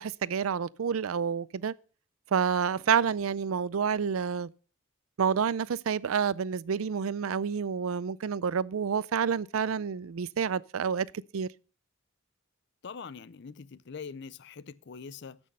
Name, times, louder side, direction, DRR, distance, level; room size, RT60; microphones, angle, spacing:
voice 1, 0.0-1.7 2.3-4.5 5.2-11.1 11.3-11.5, right 6 dB, 85° right, 0.5 m, -29 dB
voice 2, 12.8-15.4, left 5 dB, 55° left, 0.5 m, -43 dB
14.0 x 6.3 x 5.4 m
head